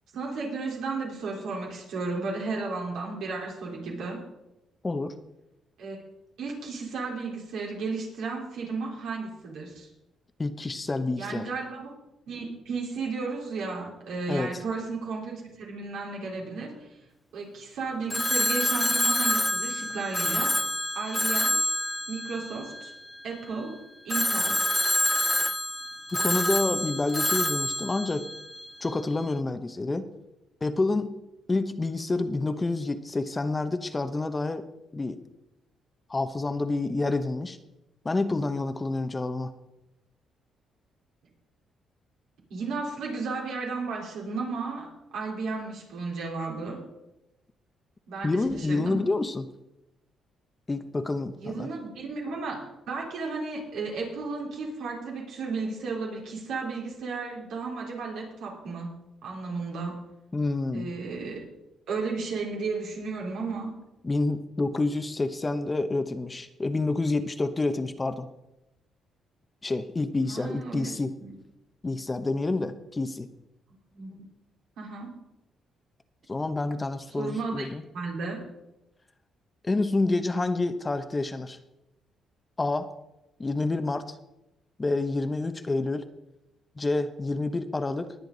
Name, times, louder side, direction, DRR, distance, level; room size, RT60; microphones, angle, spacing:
voice 1, 0.1-4.2 5.8-6.0 6.4-9.9 11.1-11.9 12.3-16.9 17.3-21.6 22.1-22.9 23.2-23.7 24.0-24.6 42.5-46.8 48.1-49.0 51.4-58.9 59.2-60.0 60.7-61.5 61.9-63.7 70.3-71.3 73.9-74.2 74.8-75.2 77.2-77.7 77.9-78.4, right 4 dB, 80° right, -2 dB, 3.9 m, -34 dB
voice 2, 10.4-11.5 14.3-14.6 26.1-28.3 28.8-30.1 30.6-31.2 31.5-34.6 34.9-35.2 36.1-37.6 38.0-39.5 48.2-49.5 50.7-51.7 60.3-60.9 64.0-68.3 69.6-71.2 71.8-73.3 76.3-77.8 79.6-81.6 82.6-82.9 83.4-84.2 84.8-86.1 86.8-88.1, left 2 dB, 25° left, 9 dB, 0.9 m, -28 dB
Telephone, 18.1-23.3 24.1-29.0, left 1 dB, 5° left, 0.3 m, -27 dB
20.0 x 8.0 x 4.0 m, 0.92 s
cardioid pair, 90°, 0 cm